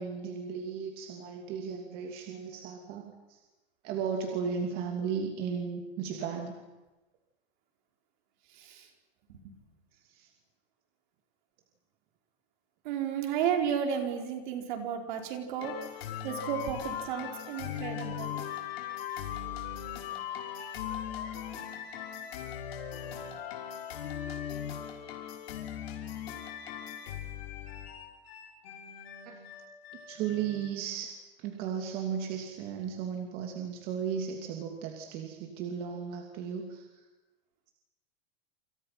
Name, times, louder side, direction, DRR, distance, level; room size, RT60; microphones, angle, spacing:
voice 1, 0.0-3.4 3.8-6.5 9.9-10.3 29.2-29.4 29.9-31.1 31.4-37.0, right 7 dB, 30° right, 3 dB, 2.7 m, -35 dB
voice 2, 8.5-8.9 9.3-9.6 12.8-15.9 16.2-18.4, right 8 dB, 55° right, 4 dB, 4.9 m, -33 dB
sound 1, 15.6-30.7, left 9 dB, 85° left, 5.9 m, -39 dB
28.5 x 27.5 x 5.9 m, 1.1 s
supercardioid pair, 180°, 30 cm